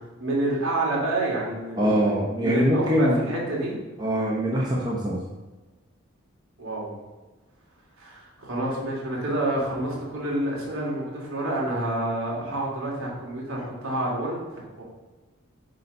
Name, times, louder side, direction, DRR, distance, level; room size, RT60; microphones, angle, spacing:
voice 1, 0.2-2.1 2.4-3.8 6.6-6.9 8.0-14.8, right 1 dB, 80° right, -3 dB, 2.9 m, -28 dB
voice 2, 1.8-3.3 4.0-5.2, equal, 20° right, -4 dB, 1.1 m, -23 dB
9.2 x 4.1 x 5.5 m, 1.2 s
head